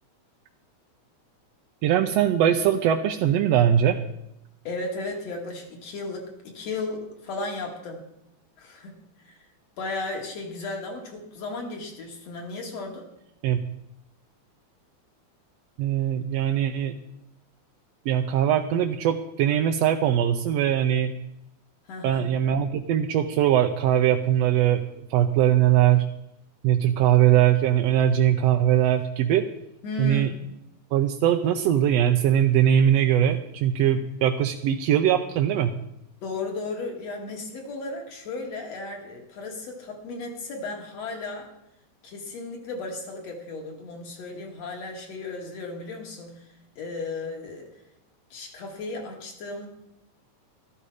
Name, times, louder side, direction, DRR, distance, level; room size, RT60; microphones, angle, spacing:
voice 1, 1.8-4.0 13.4-13.6 15.8-16.9 18.0-21.1 22.0-24.8 25.1-26.0 26.6-29.5 30.0-30.3 30.9-35.7, right 10 dB, 75° right, 4 dB, 1.7 m, -21 dB
voice 2, 4.6-8.0 8.6-9.4 9.8-13.1 21.9-22.4 29.8-30.4 36.2-41.5 42.0-47.7 48.3-49.7, left 3 dB, 60° left, 1 dB, 3.2 m, -35 dB
13.0 x 12.5 x 5.0 m, 0.82 s
omnidirectional pair, 3.4 m